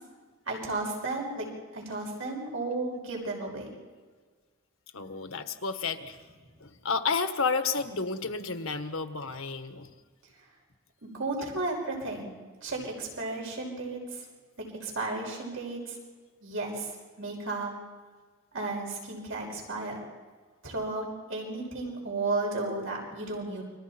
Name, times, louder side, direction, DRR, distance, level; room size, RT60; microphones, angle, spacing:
voice 1, 0.5-1.5 1.7-3.7 11.0-12.3 12.6-14.2 14.6-16.0 16.4-16.9 17.2-17.7 18.5-20.0 20.6-23.6, right 2 dB, 80° right, 0 dB, 6.0 m, -33 dB
voice 2, 4.9-6.2 6.6-9.9, left 4 dB, 90° left, 8 dB, 1.6 m, -31 dB
29.5 x 25.0 x 4.5 m, 1.5 s
head